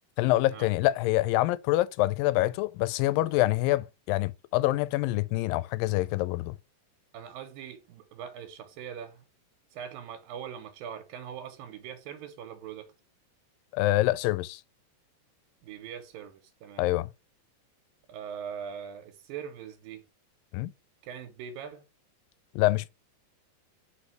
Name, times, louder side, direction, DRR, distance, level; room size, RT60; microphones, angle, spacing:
voice 1, 0.2-6.6 13.7-14.6 16.8-17.1 20.5-20.7 22.6-22.9, left 17 dB, 85° left, 2.2 m, -26 dB
voice 2, 7.1-9.2 9.7-12.9 15.6-16.9 18.1-20.1 21.0-21.9, right 8 dB, 80° right, 2.6 m, -41 dB
5.0 x 4.3 x 4.4 m
omnidirectional pair, 4.0 m